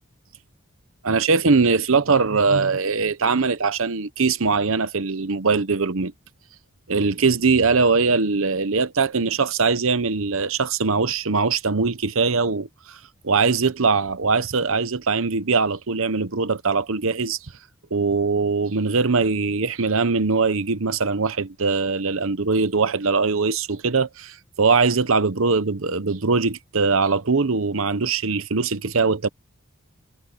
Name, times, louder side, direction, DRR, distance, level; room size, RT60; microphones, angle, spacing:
voice 1, 1.0-6.1 6.9-13.0 13.2-17.5 17.9-29.3, right 4 dB, 65° right, 0.9 m, -21 dB
head